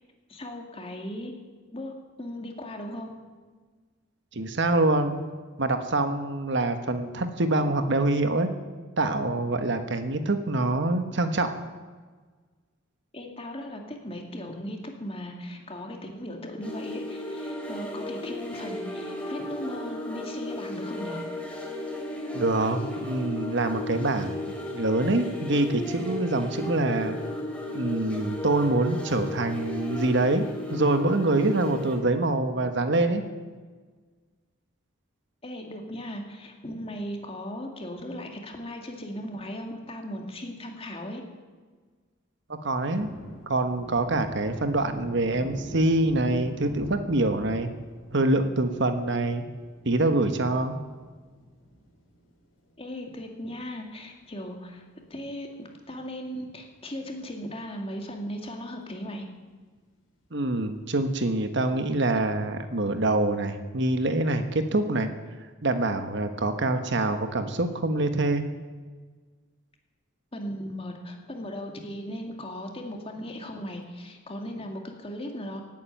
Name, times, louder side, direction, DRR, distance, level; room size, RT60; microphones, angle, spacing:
voice 1, 0.3-1.3 1.7-3.2 13.1-21.2 35.4-41.2 52.8-54.8 55.1-59.2 70.3-75.6, equal, 30° left, 2 dB, 2.2 m, -37 dB
voice 2, 4.3-5.2 5.6-8.5 9.0-11.5 22.3-27.2 27.7-33.2 42.5-43.1 43.5-47.7 48.1-49.4 49.8-50.8 60.3-65.1 65.6-68.5, right 2 dB, 60° right, 8 dB, 1.3 m, -25 dB
sound 1, 16.6-32.0, left 1 dB, 5° left, 3.2 m, -35 dB
Thunder, 42.6-53.3 53.7-53.8 54.2-55.7 55.9-56.1 56.4-57.2 57.6-57.7 58.1-58.2 60.6-61.1, equal, 90° left, 4.9 m, -46 dB
17.5 x 8.9 x 9.2 m, 1.4 s
head